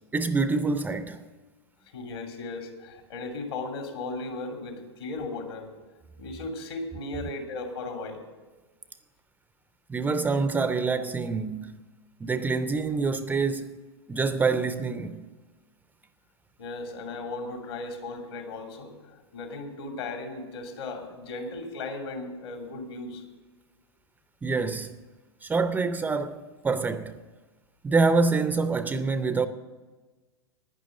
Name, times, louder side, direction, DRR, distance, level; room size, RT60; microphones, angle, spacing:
voice 1, 0.1-1.2 9.9-11.8 12.2-13.8 14.1-15.3 24.4-25.0 25.4-27.2 27.8-29.5, right 4 dB, 10° right, 0.5 m, -26 dB
voice 2, 1.9-5.7 6.2-8.2 16.6-23.2, left 2 dB, 65° left, 2.7 m, -36 dB
11.0 x 9.9 x 7.8 m
figure-of-eight pair, 95°, 14 cm